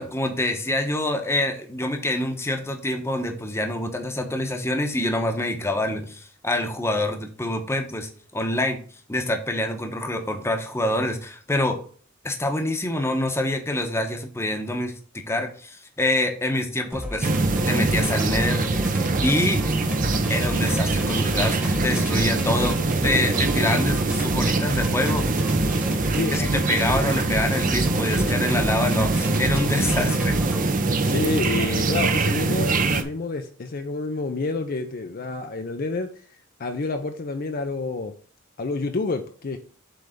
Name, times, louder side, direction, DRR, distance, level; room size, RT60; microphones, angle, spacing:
voice 1, 0.0-8.8 9.1-11.8 12.2-14.9 15.3-18.8 19.2-19.6 20.3-22.8 23.0-25.3 26.3-30.4, left 1 dB, 15° left, 4 dB, 0.9 m, -26 dB
sound 1, 16.9-30.6, left 1 dB, 10° right, 1.3 m, -32 dB
sound 2, 17.2-33.0, right 3 dB, 40° right, 0.7 m, -23 dB
voice 2, 26.1-26.6 31.0-36.2 36.6-38.1 38.6-39.6, left 3 dB, 45° left, 6 dB, 0.6 m, -28 dB
7.8 x 3.4 x 5.0 m, 0.44 s
head